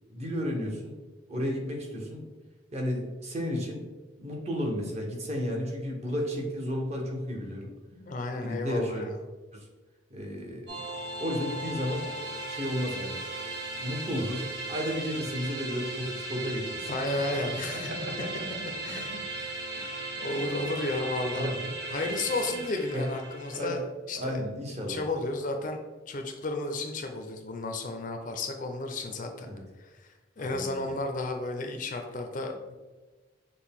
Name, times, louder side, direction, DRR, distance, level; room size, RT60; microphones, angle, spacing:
voice 1, 0.1-1.0 1.3-2.3 2.7-3.9 4.2-7.7 8.4-9.1 9.5-9.7 10.1-10.7 11.2-12.1 12.5-13.2 13.8-16.9 17.3-18.5 19.7-20.2 21.4-21.7 22.9-23.1 23.5-23.8 24.1-25.0 29.4-29.6 30.4-30.9, equal, 35° right, 0 dB, 0.8 m, -33 dB
voice 2, 8.0-9.1 16.9-17.9 18.8-19.2 19.5-19.7 20.2-21.5 21.9-23.8 24.1-24.4 24.7-25.8 26.1-29.5 29.8-29.9 30.4-32.8, left 2 dB, 40° left, 4 dB, 0.4 m, -33 dB
sound 1, 10.7-23.8, right 2 dB, 70° right, 1.2 m, -37 dB
6.3 x 2.1 x 3.6 m, 1.2 s
head